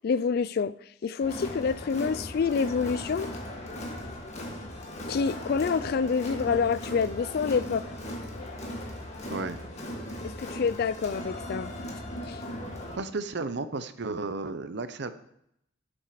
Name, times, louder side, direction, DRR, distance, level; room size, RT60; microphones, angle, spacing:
voice 1, 0.0-0.7 1.0-3.3 5.1-7.8 10.2-11.7 12.2-12.4, left 5 dB, 50° left, 17 dB, 0.3 m, -27 dB
Crowd, 1.2-13.0, left 1 dB, 35° left, 1.7 m, -38 dB
voice 2, 9.3-9.6 13.0-15.1, right 3 dB, 60° right, 12 dB, 0.7 m, -33 dB
8.9 x 7.8 x 4.9 m, 0.74 s
head